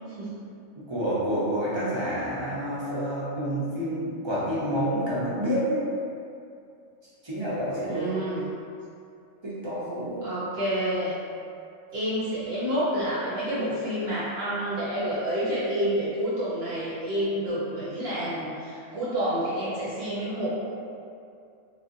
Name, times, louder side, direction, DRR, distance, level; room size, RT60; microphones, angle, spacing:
voice 1, 0.9-5.8 7.2-8.1 9.4-10.3, equal, 25° right, -10 dB, 0.6 m, -28 dB
voice 2, 7.9-8.4 10.2-11.1 11.9-20.5, equal, 55° right, -9 dB, 0.9 m, -29 dB
3.2 x 2.8 x 2.6 m, 2.4 s
omnidirectional pair, 1.4 m